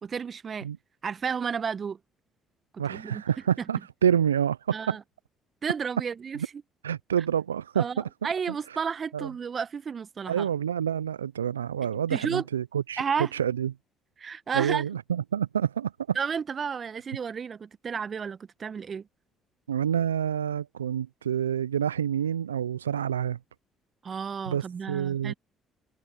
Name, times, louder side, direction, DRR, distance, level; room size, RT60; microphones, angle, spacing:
voice 1, 0.0-0.7 1.0-2.0 2.7-3.2 4.7-5.0 5.6-6.4 7.8-10.5 12.1-12.4 13.0-13.3 14.2-14.8 16.1-19.1 24.0-25.3, right 6 dB, 40° right, 1.4 m, -32 dB
voice 2, 2.8-5.0 6.4-6.5 6.8-7.9 9.1-9.3 10.3-13.0 13.3-13.7 14.5-16.2 19.7-23.4 24.5-25.3, right 9 dB, 85° right, 0.4 m, -28 dB
figure-of-eight pair, 50°, 0 cm